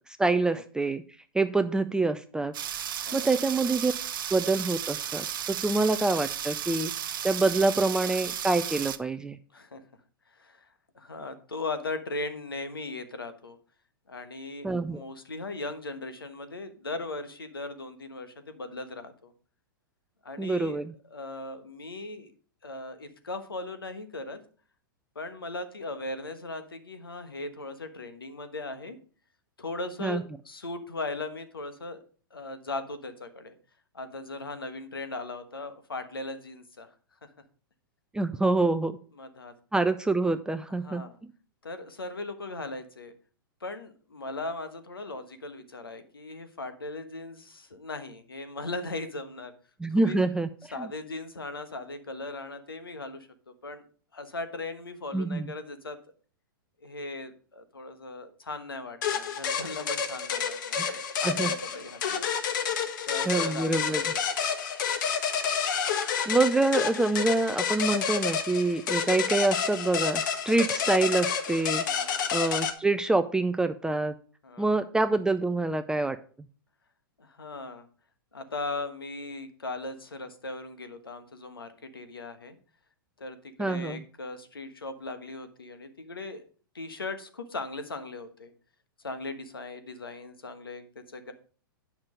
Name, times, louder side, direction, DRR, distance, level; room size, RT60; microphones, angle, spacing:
voice 1, 0.2-1.0 1.3-2.5 3.1-3.9 4.3-6.9 7.2-9.4 14.6-15.0 20.4-20.9 30.0-30.2 38.1-39.0 39.7-41.0 49.8-50.5 50.8-50.9 55.1-55.4 60.8-61.0 61.2-61.5 63.3-64.0 66.3-71.8 72.3-74.1 74.6-76.2 83.6-84.0, right 2 dB, 5° right, 9 dB, 0.4 m, -26 dB
sound 1, 2.5-9.0, right 10 dB, 65° right, 0.8 m, -34 dB
voice 2, 3.1-3.4 9.5-9.8 10.3-13.6 14.1-19.3 20.2-22.3 22.6-24.4 25.1-29.0 29.6-32.0 32.3-33.5 33.9-36.9 37.2-37.3 39.1-39.5 40.8-41.2 41.6-43.1 43.6-49.5 49.9-50.2 50.7-53.8 54.1-56.0 56.8-62.3 63.1-64.2 71.8-72.3 74.4-74.8 77.2-77.9 78.3-82.6 83.2-86.4 86.7-88.5 89.0-91.3, left 2 dB, 85° left, 10 dB, 1.3 m, -38 dB
sound 2, 59.0-72.7, left 7 dB, 60° left, 1.3 m, -29 dB
8.8 x 5.9 x 5.0 m, 0.41 s
hypercardioid pair, 105°, 12 cm